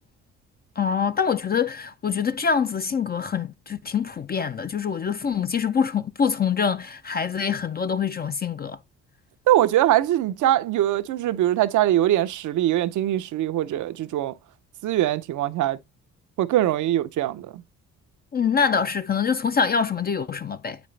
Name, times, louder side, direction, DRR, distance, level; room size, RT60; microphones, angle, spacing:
voice 1, 0.8-8.8 18.3-20.8, left 6 dB, 30° left, 0.5 m, -25 dB
voice 2, 9.5-14.4 14.8-15.8 16.4-17.6, right 13 dB, 75° right, 0.7 m, -22 dB
8.5 x 5.1 x 3.2 m
cardioid pair, 90°, 30 cm